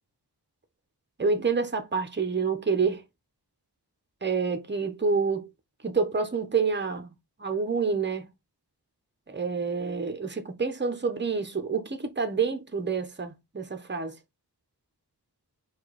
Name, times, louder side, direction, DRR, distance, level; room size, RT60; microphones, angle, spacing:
voice 1, 1.2-3.0 4.2-5.5 5.8-7.1 7.4-8.3 9.3-14.1, right 5 dB, 25° right, 0.8 m, -28 dB
4.4 x 2.5 x 4.6 m
wide cardioid pair, 55°, 40 cm